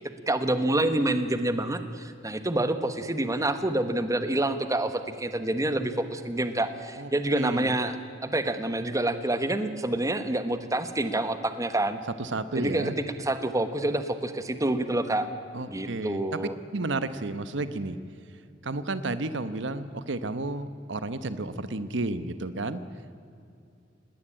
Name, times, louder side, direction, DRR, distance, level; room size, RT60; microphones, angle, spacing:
voice 1, 0.3-8.0 8.2-12.0 12.5-12.9 13.2-15.3 15.7-16.5, right 1 dB, 20° right, 10 dB, 1.3 m, -27 dB
voice 2, 7.0-7.7 12.2-13.0 15.5-16.4 16.7-18.0 18.6-22.8, right 2 dB, 70° right, 13 dB, 1.0 m, -32 dB
20.0 x 18.5 x 8.8 m, 2.4 s
head